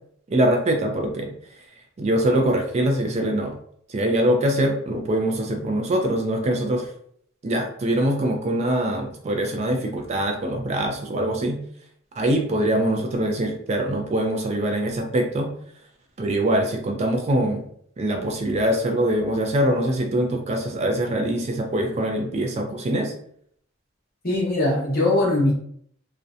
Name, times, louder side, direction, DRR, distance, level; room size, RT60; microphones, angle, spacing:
voice 1, 0.3-1.3 2.0-3.6 3.9-6.9 7.4-11.6 12.2-15.5 16.2-17.7 18.0-23.1, right 1 dB, 30° right, 3 dB, 0.3 m, -23 dB
voice 2, 24.2-25.5, left 2 dB, 45° left, -4 dB, 0.9 m, -21 dB
2.6 x 2.1 x 2.4 m, 0.65 s
head